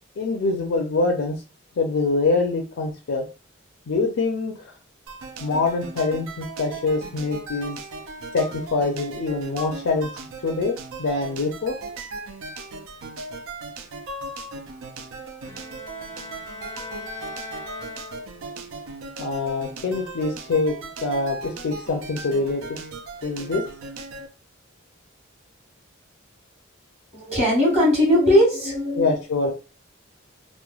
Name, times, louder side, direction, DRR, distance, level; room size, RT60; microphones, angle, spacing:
voice 1, 0.2-1.4 1.8-3.2 3.9-4.7 5.4-7.8 8.3-10.1 10.4-11.8 19.2-20.8 21.0-22.8 23.2-23.6 28.9-29.5, left 3 dB, 70° left, 3 dB, 0.4 m, -24 dB
sound 1, 5.1-24.3, right 3 dB, 85° right, 0.4 m, -37 dB
Bowed string instrument, 15.4-18.6, left 3 dB, 15° left, 0.5 m, -40 dB
voice 2, 27.1-29.1, equal, 30° right, -4 dB, 1.3 m, -19 dB
3.0 x 2.1 x 2.3 m, 0.33 s
head